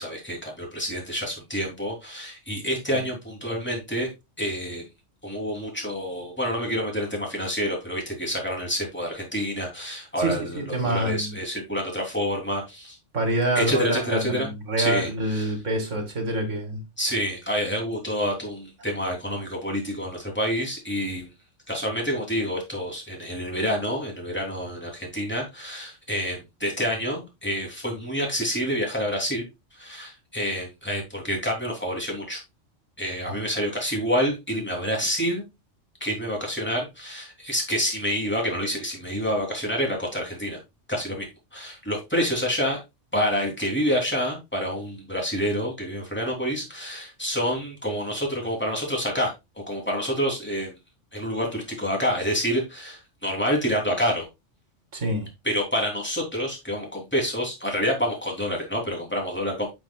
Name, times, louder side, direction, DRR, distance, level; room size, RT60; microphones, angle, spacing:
voice 1, 0.0-4.1 4.4-4.9 5.2-13.0 13.5-14.5 14.8-15.5 17.0-21.3 21.7-29.4 29.7-32.4 33.0-35.4 36.0-40.6 40.9-42.8 43.1-50.7 51.1-54.3 55.4-59.7, equal, 10° left, 3.0 m, -28 dB
voice 2, 10.2-11.3 13.1-16.8 33.3-33.5 54.9-55.3, right 1 dB, 80° right, 2.6 m, -26 dB
9.8 x 6.0 x 2.3 m
omnidirectional pair, 1.3 m